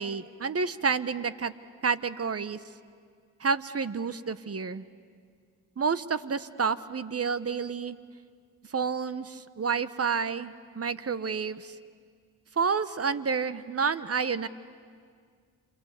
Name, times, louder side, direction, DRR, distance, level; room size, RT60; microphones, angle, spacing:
voice 1, 0.0-1.5 1.8-2.6 3.4-4.8 5.8-8.0 8.7-11.7 12.6-14.5, right 5 dB, 35° right, 14 dB, 1.2 m, -29 dB
28.5 x 25.0 x 8.4 m, 2.1 s
supercardioid pair, 50°, 40 cm